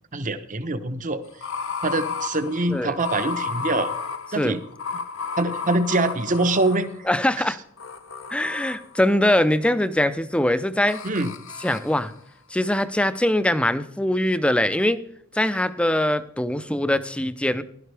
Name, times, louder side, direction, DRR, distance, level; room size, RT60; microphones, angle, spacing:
voice 1, 0.1-1.2 1.8-3.9 4.3-4.6 5.4-7.1 11.0-11.3, right 2 dB, 35° right, 11 dB, 0.9 m, -24 dB
sound 1, 1.2-7.3 7.8-9.1 10.9-12.0, left 5 dB, 60° left, 1.0 m, -33 dB
voice 2, 7.1-7.6 8.3-11.0 11.6-12.1 12.5-15.0 15.3-17.6, left 1 dB, 5° left, 13 dB, 0.5 m, -22 dB
15.5 x 12.0 x 3.4 m, 0.66 s
head